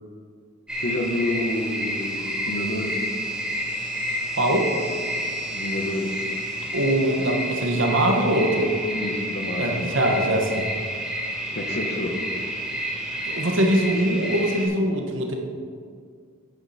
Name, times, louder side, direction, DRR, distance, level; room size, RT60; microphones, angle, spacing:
sound 1, 0.7-14.7, equal, 5° right, 2.4 m, -30 dB
voice 1, 0.8-3.1 5.5-6.2 8.9-10.0 11.5-12.2, left 1 dB, 55° left, 2 dB, 1.2 m, -29 dB
voice 2, 4.4-4.7 6.7-8.7 9.6-10.7 13.3-15.3, right 1 dB, 70° right, 3 dB, 1.3 m, -22 dB
10.5 x 9.7 x 4.3 m, 2.1 s
head